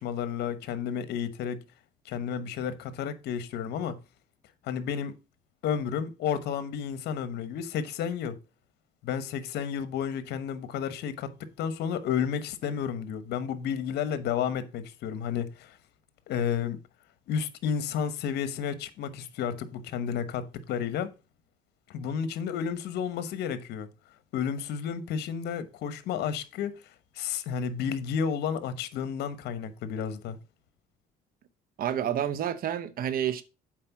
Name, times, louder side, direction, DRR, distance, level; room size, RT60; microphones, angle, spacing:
voice 1, 0.0-1.6 2.0-4.0 4.6-5.1 5.6-8.3 9.0-15.8 16.3-16.8 17.3-21.1 21.9-23.9 24.3-26.7 27.1-30.4, left 7 dB, 75° left, 1.1 m, -31 dB
voice 2, 31.8-33.4, right 10 dB, 60° right, 0.8 m, -29 dB
7.5 x 4.8 x 5.8 m
cardioid pair, 110°, 17 cm